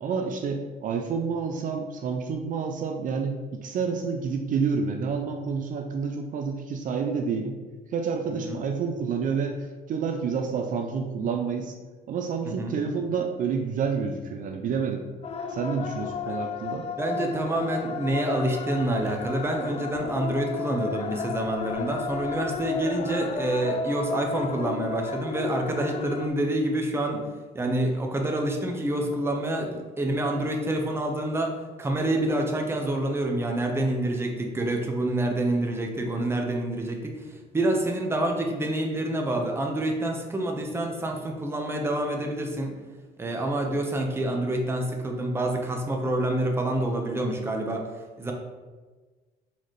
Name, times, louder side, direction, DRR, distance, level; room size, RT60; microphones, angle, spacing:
voice 1, 0.0-7.6 7.9-11.7 12.1-15.0 15.5-16.9, right 5 dB, 50° right, 3 dB, 0.4 m, -29 dB
sound 1, 15.2-26.3, left 5 dB, 40° left, 0.3 m, -33 dB
voice 2, 17.0-27.3 27.5-42.8 43.2-47.9 48.2-48.3, right 1 dB, 15° right, 2 dB, 0.7 m, -27 dB
4.2 x 3.8 x 3.1 m, 1.3 s
cardioid pair, 110°, 17 cm